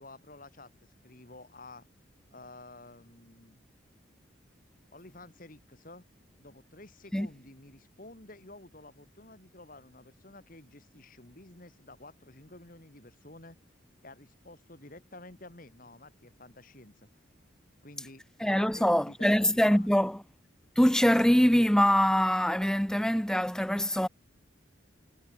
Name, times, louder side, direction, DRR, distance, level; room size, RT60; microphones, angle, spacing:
voice 1, 0.0-1.9 2.3-3.6 4.9-6.1 6.4-13.6 14.0-17.1 17.8-20.1, left 2 dB, 45° left, 3.0 m, -51 dB
voice 2, 18.4-20.2 20.8-24.1, equal, 5° left, 0.7 m, -24 dB
head